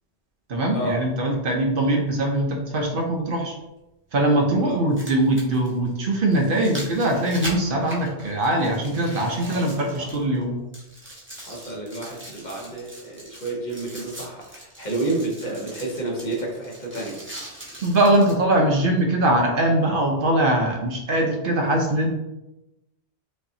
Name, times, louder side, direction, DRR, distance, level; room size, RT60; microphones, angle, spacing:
voice 1, 0.5-3.5 4.1-10.6 17.8-22.2, right 1 dB, 60° right, 1 dB, 0.8 m, -22 dB
sound 1, 1.5-1.6 3.5-3.6 4.7-10.4 10.7-18.4 19.0-19.1, right 1 dB, 10° right, 0.9 m, -40 dB
voice 2, 9.5-10.6 11.5-17.2, right 2 dB, 45° left, -2 dB, 0.9 m, -31 dB
5.0 x 2.7 x 2.6 m, 0.93 s
omnidirectional pair, 1.1 m